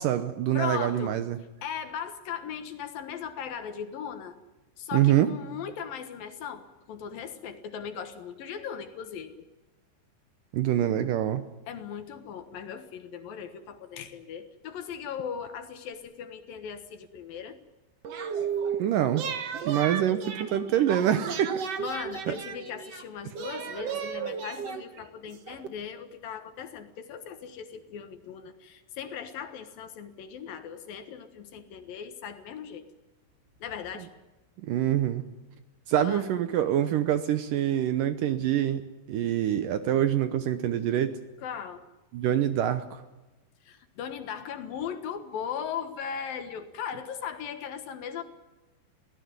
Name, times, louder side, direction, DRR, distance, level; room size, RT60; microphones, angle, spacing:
voice 1, 0.0-1.4 4.9-5.3 10.5-11.4 18.8-19.2 19.7-21.5 22.3-22.4 34.6-35.2 35.9-38.8 39.1-41.1 42.1-43.0, right 11 dB, 80° right, 11 dB, 1.9 m, -25 dB
voice 2, 0.5-1.2 1.6-4.4 4.8-9.4 11.7-17.6 21.8-32.8 33.6-34.1 36.0-36.3 41.4-41.8 43.7-48.2, left 7 dB, 65° left, 9 dB, 2.8 m, -38 dB
sound 1, 18.0-18.8 19.1-23.0 23.4-25.7, right 7 dB, 60° right, 1.7 m, -34 dB
22.5 x 17.0 x 9.5 m, 1.1 s
omnidirectional pair, 5.1 m